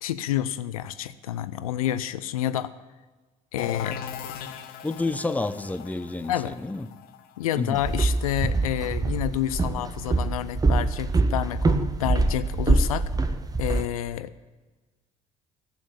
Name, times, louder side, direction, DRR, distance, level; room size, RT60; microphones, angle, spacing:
voice 1, 0.0-2.7 3.5-4.0 6.3-6.5 7.4-13.1 13.6-14.3, left 12 dB, 75° left, 0.5 m, -29 dB
sound 1, 3.6-9.2, left 9 dB, 55° left, 1.0 m, -39 dB
voice 2, 4.8-6.9 7.5-7.8, left 2 dB, 10° left, 0.7 m, -29 dB
Walk footsteps, 7.7-13.9, right 3 dB, 20° right, 1.0 m, -24 dB
12.0 x 8.7 x 8.7 m
figure-of-eight pair, 55°, 19 cm